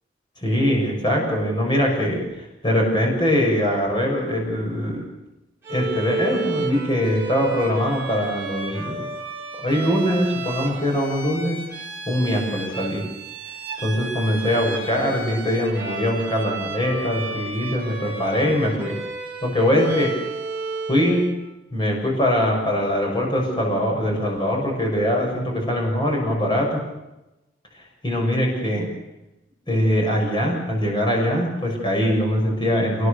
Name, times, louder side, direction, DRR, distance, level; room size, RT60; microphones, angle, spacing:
voice 1, 0.4-2.2 2.6-5.0 5.7-9.0 9.6-11.6 12.1-13.0 13.8-19.0 19.4-20.2 20.9-21.3 21.7-26.8 28.0-28.9 29.7-33.1, equal, 25° left, 0 dB, 6.7 m, -22 dB
Bowed string instrument, 5.6-21.4, right 4 dB, 15° right, 7.5 m, -32 dB
27.5 x 20.5 x 6.8 m, 0.96 s
head